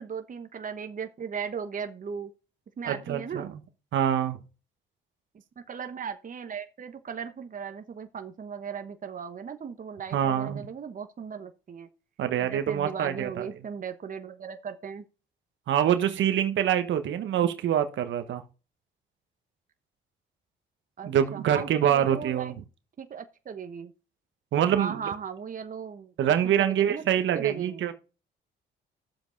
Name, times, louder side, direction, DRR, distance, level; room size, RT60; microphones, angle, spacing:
voice 1, 0.0-2.3 2.8-3.5 5.6-11.9 12.4-15.0 21.0-22.6 23.0-23.9 24.7-26.1 26.4-27.0 27.3-27.9, right 6 dB, 40° right, 1.2 m, -37 dB
voice 2, 2.8-3.5 3.9-4.4 10.1-10.7 12.2-13.5 15.7-18.4 21.0-22.5 24.5-24.9 26.2-27.9, right 10 dB, 75° right, 1.4 m, -25 dB
11.0 x 7.4 x 4.0 m
cardioid pair, 90°, 20 cm